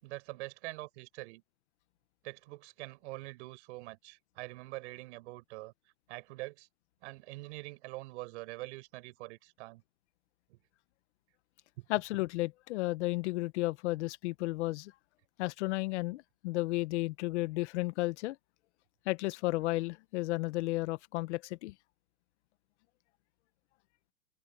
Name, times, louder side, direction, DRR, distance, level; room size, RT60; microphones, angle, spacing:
voice 1, 0.0-1.4 2.2-5.7 6.1-6.7 7.0-9.8 10.5-10.6 11.8-11.9, right 21 dB, 55° right, 6.3 m, -44 dB
voice 2, 11.9-14.9 15.4-18.4 19.1-21.7, left 20 dB, 55° left, 1.1 m, -33 dB
supercardioid pair, 150°, 42 cm